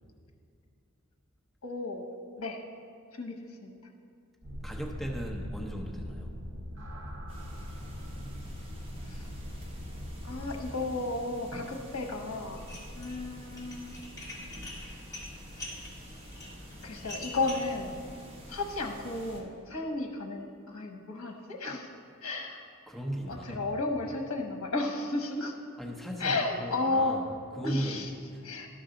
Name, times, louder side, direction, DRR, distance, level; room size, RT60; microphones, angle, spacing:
voice 1, 1.6-2.0 2.4-2.6 3.1-3.7 9.1-9.3 10.2-12.6 12.9-13.9 16.8-17.9 18.5-21.9 22.2-22.6 23.3-25.5 26.2-27.2 27.6-28.1 28.4-28.7, left 2 dB, 70° left, 2 dB, 0.9 m, -33 dB
sound 1, 4.4-10.8, equal, 55° right, 0.8 m, -41 dB
voice 2, 4.6-6.3 22.9-23.7 25.8-27.2 27.6-28.4, equal, ahead, -1 dB, 0.7 m, -37 dB
sound 2, 7.3-19.4, equal, 25° right, 1.2 m, -47 dB
Dishes pots and pans, 12.6-13.2 13.5-17.7, left 2 dB, 15° left, 1.7 m, -44 dB
12.5 x 5.7 x 3.8 m, 2.3 s
head